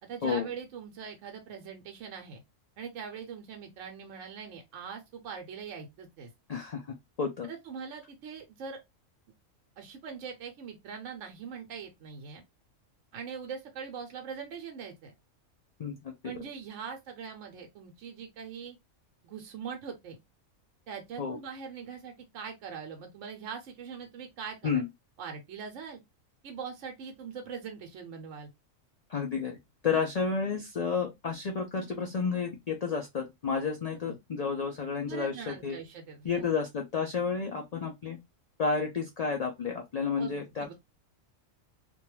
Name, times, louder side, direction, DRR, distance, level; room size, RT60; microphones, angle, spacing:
voice 1, 0.0-2.4 2.8-6.3 7.5-8.8 9.8-12.4 13.1-15.1 16.2-18.8 19.2-20.2 20.9-24.8 25.2-26.0 26.4-28.5 34.1-34.2 35.0-36.5 40.2-40.7, right 6 dB, 70° right, 0.9 m, -42 dB
voice 2, 6.5-7.5 15.8-16.1 21.2-21.4 24.6-24.8 29.1-29.6 29.8-35.8 36.2-38.2 38.6-40.7, left 5 dB, 60° left, 0.4 m, -31 dB
2.5 x 2.2 x 3.0 m
omnidirectional pair, 1.4 m